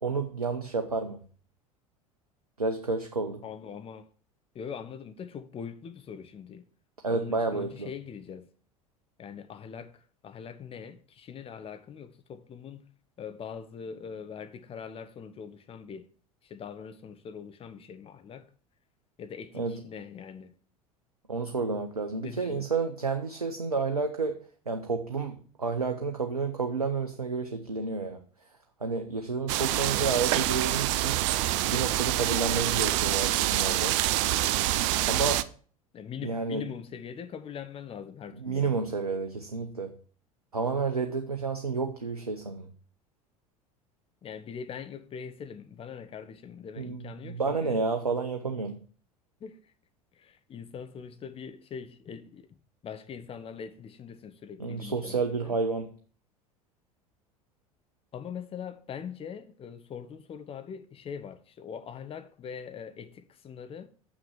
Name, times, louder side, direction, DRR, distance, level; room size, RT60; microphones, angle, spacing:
voice 1, 0.0-1.2 2.6-3.4 7.0-7.9 19.5-19.7 21.3-24.4 24.7-28.2 28.8-31.2 31.7-34.0 35.0-35.5 36.2-36.6 38.4-40.0 40.5-42.7 46.8-48.8 54.6-55.9, right 4 dB, 85° right, 0.8 m, -30 dB
voice 2, 3.4-4.1 4.5-6.6 7.1-8.5 9.2-12.8 13.2-16.1 16.4-18.5 19.2-20.5 22.2-22.7 35.9-38.8 44.2-47.8 49.4-49.7 50.1-52.5 52.8-55.6 58.1-63.9, left 7 dB, 30° left, 1.1 m, -42 dB
sound 1, 29.5-35.4, right 15 dB, 55° right, 0.6 m, -26 dB
7.5 x 6.3 x 7.0 m
figure-of-eight pair, 75°, 19 cm